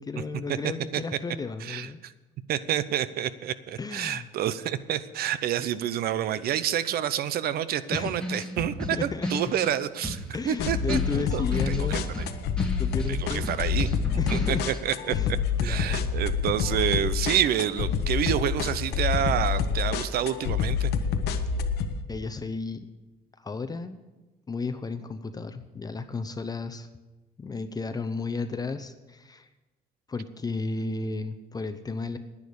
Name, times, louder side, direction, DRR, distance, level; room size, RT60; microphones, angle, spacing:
voice 1, 0.0-2.0 3.8-4.3 7.9-8.2 8.9-9.3 10.3-12.1 12.8-13.5 14.2-14.6 15.1-15.3 15.6-16.1 22.1-22.9 23.4-24.0 24.5-26.9 27.4-29.5 30.1-32.2, left 4 dB, 20° left, 9 dB, 0.7 m, -33 dB
voice 2, 1.6-2.1 2.5-12.0 13.1-13.9 14.3-15.3 15.6-20.9, right 10 dB, 65° right, 15 dB, 0.7 m, -28 dB
sound 1, 8.2-14.8, left 1 dB, 5° left, 1.7 m, -35 dB
sound 2, 10.6-21.9, left 6 dB, 80° left, 1.0 m, -27 dB
10.5 x 9.8 x 7.0 m, 1.1 s
cardioid pair, 110°, 17 cm